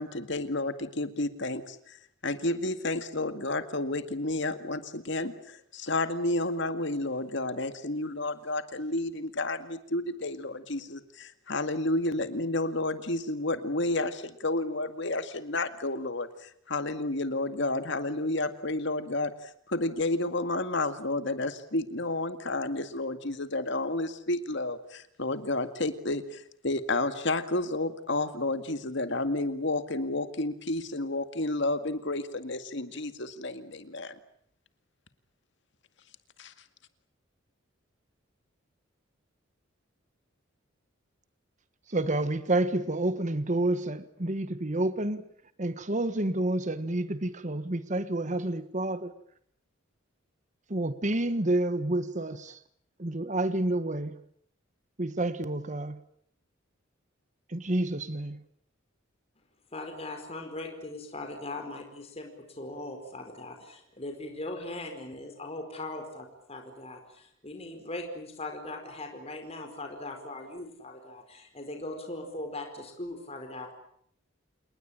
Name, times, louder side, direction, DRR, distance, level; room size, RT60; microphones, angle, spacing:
voice 1, 0.0-2.0 2.2-34.2 36.4-36.5, left 2 dB, 60° left, 2.0 m, -31 dB
voice 2, 41.9-45.3 45.6-49.1 50.7-52.6 53.0-54.2 55.0-56.0 57.5-58.4, right 1 dB, 40° right, 1.4 m, -29 dB
voice 3, 59.7-73.7, left 2 dB, 30° left, 4.8 m, -40 dB
28.5 x 20.5 x 8.9 m
head